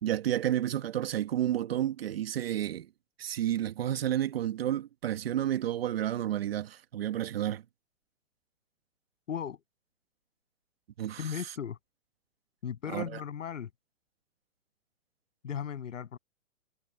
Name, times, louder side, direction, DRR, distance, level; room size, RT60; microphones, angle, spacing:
voice 1, 0.0-2.9 3.2-7.6 11.0-11.4 12.9-13.2, right 11 dB, 45° right, 1.8 m, -31 dB
voice 2, 9.3-9.6 11.2-11.8 12.6-13.7 15.4-16.2, left 8 dB, 60° left, 7.9 m, -36 dB
hypercardioid pair, 160°, 42 cm